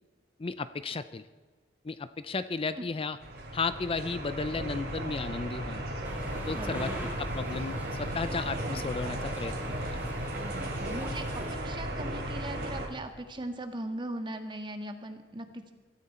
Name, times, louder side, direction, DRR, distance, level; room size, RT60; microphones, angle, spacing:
voice 1, 0.4-1.2 1.8-3.2 3.5-5.8 6.5-6.9 7.2-9.5 9.8-10.0, left 4 dB, 30° left, 13 dB, 0.5 m, -34 dB
sound 1, 3.2-12.9, right 1 dB, 60° right, 3.2 m, -35 dB
sound 2, 6.0-11.5, equal, 10° right, 3.6 m, -43 dB
voice 2, 6.5-7.0 10.4-11.2 11.5-15.7, right 1 dB, 30° right, 6 dB, 1.6 m, -39 dB
23.0 x 13.5 x 4.3 m, 1.4 s
head